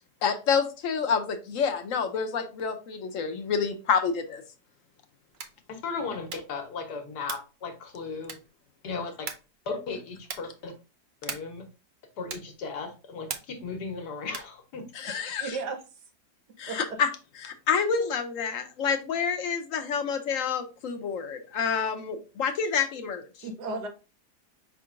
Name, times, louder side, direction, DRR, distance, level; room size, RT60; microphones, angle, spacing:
voice 1, 0.2-4.4 14.9-15.6 16.6-17.1 17.4-23.2, left 6 dB, 65° left, 7 dB, 0.9 m, -28 dB
sound 1, 5.3-5.7 6.2-6.6 7.2-7.6 8.2-8.6 9.2-9.6 10.2-10.6 11.2-11.6 12.3-12.6 13.3-13.7 14.3-14.6, right 5 dB, 70° right, 0.4 m, -39 dB
voice 2, 5.7-8.4 8.8-9.3 9.7-10.7 11.2-11.6 12.2-14.8, left 4 dB, 85° left, 4 dB, 1.6 m, -36 dB
voice 3, 15.1-16.0 16.7-17.0 23.4-23.9, right 3 dB, 90° right, 5 dB, 1.5 m, -35 dB
5.2 x 3.8 x 2.4 m, 0.31 s
omnidirectional pair, 1.7 m